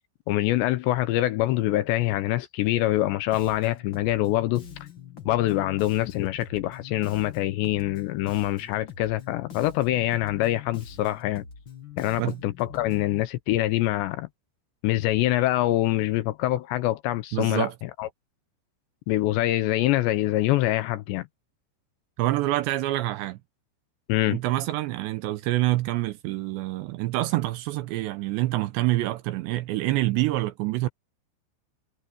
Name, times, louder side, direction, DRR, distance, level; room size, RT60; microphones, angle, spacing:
voice 1, 0.3-4.7 5.3-11.4 12.0-14.3 14.8-18.1 19.1-21.3 24.1-24.4, left 15 dB, 75° left, 2.8 m, -25 dB
Bass guitar, 3.3-13.2, left 8 dB, 45° left, 1.5 m, -43 dB
voice 2, 17.3-17.7 22.2-23.4 24.3-30.9, right 17 dB, 80° right, 2.7 m, -26 dB
omnidirectional pair, 5.6 m